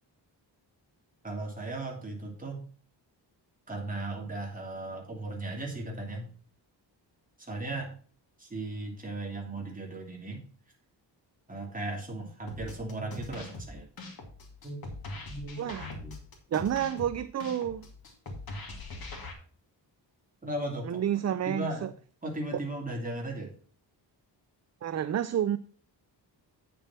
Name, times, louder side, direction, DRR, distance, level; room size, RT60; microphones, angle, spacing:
voice 1, 1.2-2.6 3.7-6.3 7.4-7.9 8.4-10.4 11.5-13.8 14.6-14.8 15.3-16.2 20.4-21.0 21.4-21.9 22.2-23.5, right 2 dB, 20° right, 3.0 m, -36 dB
sound 1, 12.5-19.3, left 2 dB, 55° left, 2.5 m, -42 dB
voice 2, 15.6-15.9 16.5-17.9 20.9-21.9 24.8-25.6, right 10 dB, 40° right, 0.4 m, -30 dB
8.9 x 6.9 x 4.2 m
wide cardioid pair, 155°, 42 cm